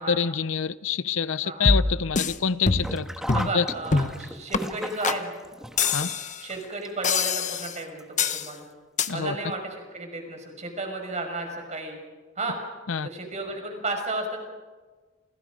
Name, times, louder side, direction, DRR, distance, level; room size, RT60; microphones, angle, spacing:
voice 1, 0.0-3.1 3.3-3.6 5.9-6.1 9.1-9.4 12.9-13.1, left 6 dB, 70° left, 0.7 m, -26 dB
voice 2, 1.4-1.7 3.3-5.4 6.4-8.0 8.3-8.7 9.1-12.0 12.4-12.6 12.9-14.4, right 2 dB, 35° right, 6.0 m, -33 dB
sound 1, 1.7-2.4 2.7-3.0 3.3-3.5 3.9-4.2 4.5-4.6 5.0-5.2 5.8-6.4 7.0-7.8 8.2-8.5 9.0-9.1, left 4 dB, 40° left, 1.1 m, -24 dB
Sink (filling or washing), 2.7-7.7 8.0-8.1 9.1-9.2 9.5-9.6, equal, 5° right, 1.5 m, -36 dB
29.5 x 29.0 x 5.2 m
head